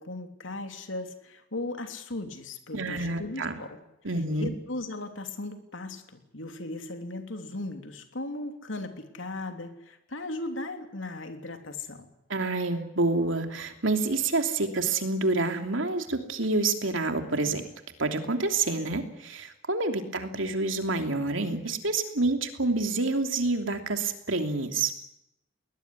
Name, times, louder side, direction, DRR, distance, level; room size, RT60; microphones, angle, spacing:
voice 1, 0.0-3.8 4.4-12.1, left 2 dB, 70° left, 6 dB, 3.2 m, -37 dB
voice 2, 2.7-3.6 4.0-4.5 12.3-17.6 18.0-24.9, right 3 dB, 75° right, 6 dB, 3.0 m, -28 dB
21.0 x 20.5 x 9.7 m, 0.83 s
head